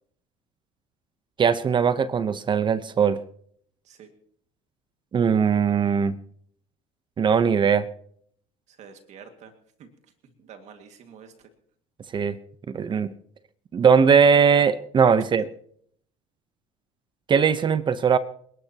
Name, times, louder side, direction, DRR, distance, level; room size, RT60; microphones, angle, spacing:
voice 1, 1.4-3.2 5.1-6.1 7.2-7.9 12.1-12.3 12.7-13.1 13.7-15.5 17.3-18.2, right 6 dB, 35° right, 14 dB, 0.9 m, -20 dB
voice 2, 8.7-9.5 9.8-9.9 10.4-11.3, right 6 dB, 60° right, 6 dB, 2.1 m, -47 dB
28.0 x 12.0 x 3.0 m, 0.63 s
supercardioid pair, 90°, 13 cm